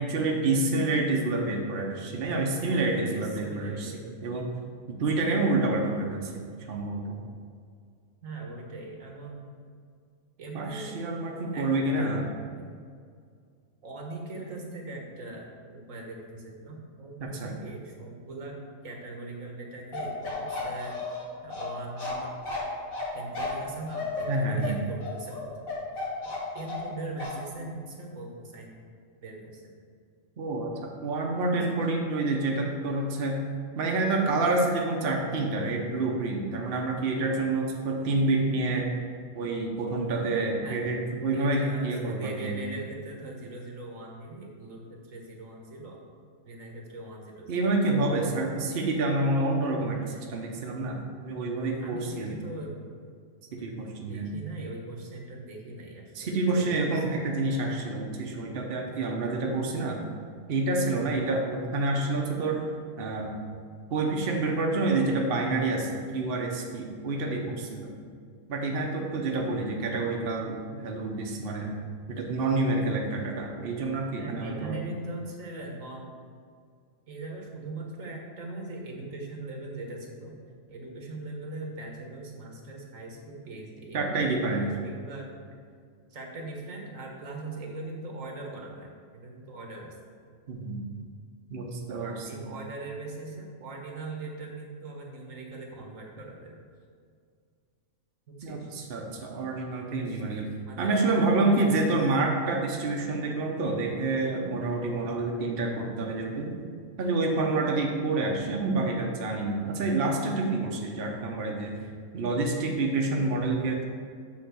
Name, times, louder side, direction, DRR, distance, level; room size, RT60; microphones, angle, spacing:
voice 1, 0.0-4.5 4.9-6.4 6.7-7.2 10.5-12.2 17.2-17.5 24.3-24.7 30.4-33.5 33.8-39.0 39.3-42.6 47.5-52.3 53.5-54.3 56.1-60.0 60.5-62.6 63.0-63.3 63.9-67.9 68.5-71.7 72.1-74.8 83.9-84.7 90.5-90.8 91.5-92.5 98.4-100.5 100.8-106.5 107.0-111.8 112.1-113.8, right 2 dB, 50° right, 0 dB, 0.9 m, -28 dB
voice 2, 2.7-4.2 8.2-9.5 10.4-11.1 11.5-12.3 13.8-21.1 21.4-22.3 23.1-25.7 26.2-28.8 29.2-29.7 31.5-31.6 40.6-40.8 41.3-46.0 46.4-47.5 48.3-48.5 51.8-52.8 54.1-56.8 57.1-57.3 74.2-76.1 77.1-80.4 80.7-85.4 86.1-90.0 91.9-96.6 98.3-98.7 100.0-100.2 100.7-101.0 101.4-101.7, right 2 dB, 75° right, 0 dB, 1.5 m, -41 dB
Bark, 19.9-26.9 27.2-27.4, left 3 dB, 90° left, 2.4 m, -34 dB
7.4 x 3.8 x 6.1 m, 2.1 s
omnidirectional pair, 1.4 m